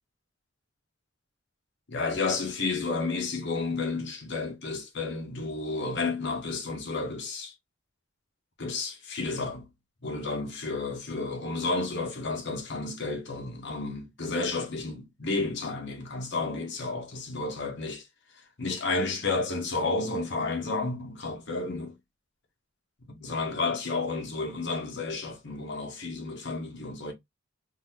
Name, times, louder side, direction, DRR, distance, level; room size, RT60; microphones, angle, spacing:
voice 1, 1.9-7.5 8.6-9.7 10.0-18.0 18.6-22.0 23.1-27.1, left 3 dB, 60° left, 1.1 m, -31 dB
3.9 x 2.8 x 2.7 m
head